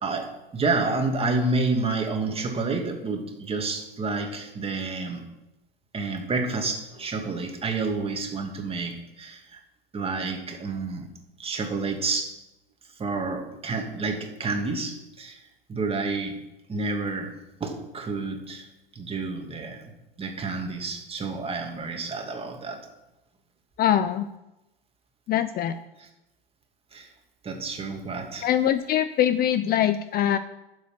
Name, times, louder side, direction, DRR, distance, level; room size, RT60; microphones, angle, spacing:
voice 1, 0.0-5.2 5.9-9.6 9.9-11.1 11.4-12.3 13.0-15.4 15.7-16.4 16.7-17.3 17.6-18.7 18.9-19.9 20.2-22.8 26.0-26.1 26.9-27.1 27.4-28.5, right 3 dB, 20° right, 3 dB, 2.5 m, -29 dB
voice 2, 23.8-24.3 25.3-25.7 28.4-30.4, left 10 dB, 30° left, 12 dB, 0.6 m, -23 dB
12.0 x 7.5 x 6.0 m, 0.98 s
hypercardioid pair, 100°, 29 cm